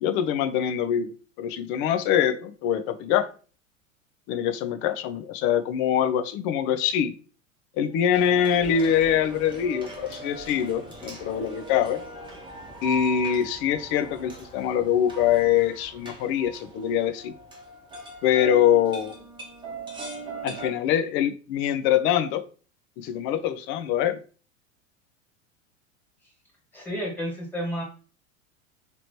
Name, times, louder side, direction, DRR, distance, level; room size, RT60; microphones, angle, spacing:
voice 1, 0.0-1.1 1.4-3.3 4.3-7.1 7.8-12.0 12.8-17.3 18.2-19.1 20.4-22.4 23.0-24.2, left 9 dB, 30° left, 9 dB, 0.4 m, -24 dB
sound 1, 8.1-20.7, right 3 dB, 10° right, 0.9 m, -40 dB
voice 2, 26.7-27.8, equal, 5° left, -2 dB, 1.5 m, -31 dB
3.0 x 2.9 x 2.7 m, 0.38 s
hypercardioid pair, 90°, 39 cm